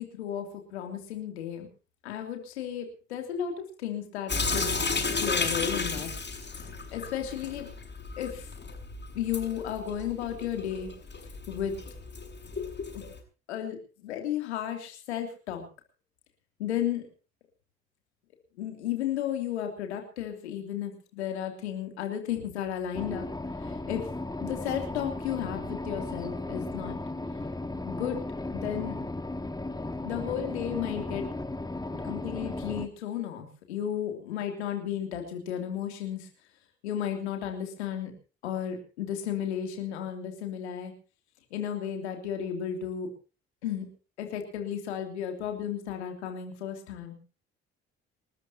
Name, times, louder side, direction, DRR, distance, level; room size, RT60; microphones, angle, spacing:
voice 1, 0.0-1.7 2.0-3.5 3.8-4.6 5.2-6.1 6.9-7.7 8.2-8.5 9.1-10.9 11.5-11.8 12.9-13.1 13.5-15.6 16.6-17.1 18.6-23.3 23.6-24.0 24.4-27.0 27.8-28.2 28.5-29.0 30.0-31.2 31.9-36.3 36.8-38.1 38.4-40.9 41.5-43.1 43.6-43.9 44.2-47.2, left 9 dB, 85° left, 4 dB, 3.1 m, -33 dB
Sink (filling or washing) / Drip, 4.3-13.2, left 4 dB, 35° left, 6.9 m, -33 dB
sound 1, 22.9-32.9, left 2 dB, 10° left, 2.2 m, -35 dB
28.0 x 13.5 x 2.9 m, 0.35 s
hypercardioid pair, 45°, 32 cm